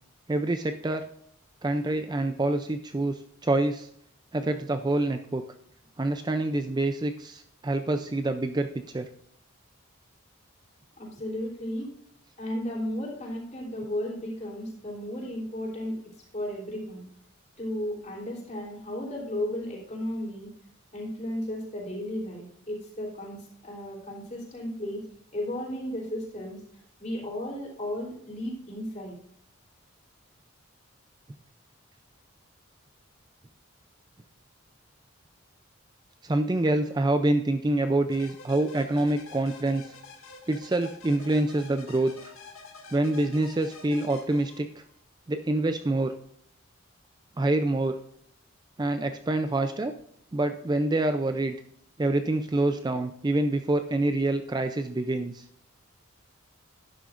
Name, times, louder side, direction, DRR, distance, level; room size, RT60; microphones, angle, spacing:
voice 1, 0.3-1.0 1.6-3.9 4.3-5.4 6.0-9.1 36.2-39.9 40.5-42.3 42.9-44.8 45.3-46.1 47.4-48.0 48.8-49.9 50.3-51.6 52.0-55.5, right 2 dB, 20° right, 8 dB, 0.4 m, -26 dB
voice 2, 11.0-11.9 12.4-16.0 16.3-17.0 17.6-20.5 20.9-25.0 25.3-26.6 27.0-29.2, left 1 dB, 35° left, -3 dB, 3.3 m, -34 dB
sound 1, 38.1-45.0, left 4 dB, 80° left, 2.1 m, -48 dB
12.0 x 10.5 x 2.5 m, 0.68 s
head